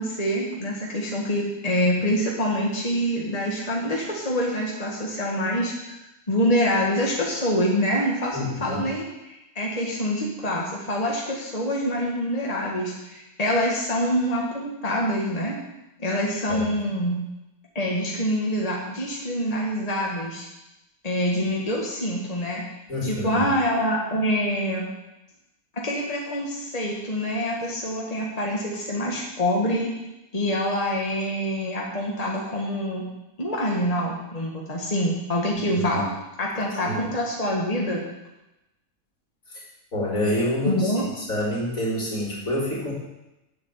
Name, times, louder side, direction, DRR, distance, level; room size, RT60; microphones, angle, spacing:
voice 1, 0.0-6.0 6.3-15.6 16.0-17.2 17.8-20.5 21.0-22.6 23.0-24.8 25.7-29.9 30.3-33.1 33.4-36.1 36.4-38.0 40.6-41.0, equal, 25° left, -3 dB, 2.1 m, -26 dB
voice 2, 8.3-8.8 16.5-16.7 22.9-23.4 35.7-36.0 36.8-36.9 39.5-39.6 39.9-40.9 41.2-42.9, left 1 dB, 65° left, -5 dB, 4.3 m, -27 dB
8.4 x 8.3 x 8.9 m, 0.94 s
omnidirectional pair, 1.6 m